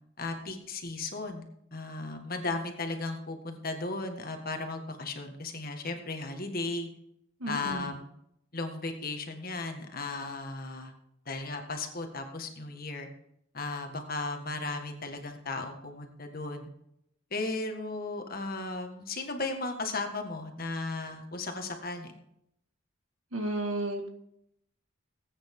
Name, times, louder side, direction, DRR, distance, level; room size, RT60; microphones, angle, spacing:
voice 1, 0.2-6.9 7.5-8.1 8.5-10.9 11.3-13.1 13.5-16.7 17.3-22.1, left 3 dB, 45° left, 5 dB, 1.8 m, -36 dB
voice 2, 7.4-7.9 23.3-24.1, right 2 dB, 85° right, 5 dB, 2.0 m, -33 dB
19.0 x 9.0 x 3.8 m, 0.77 s
head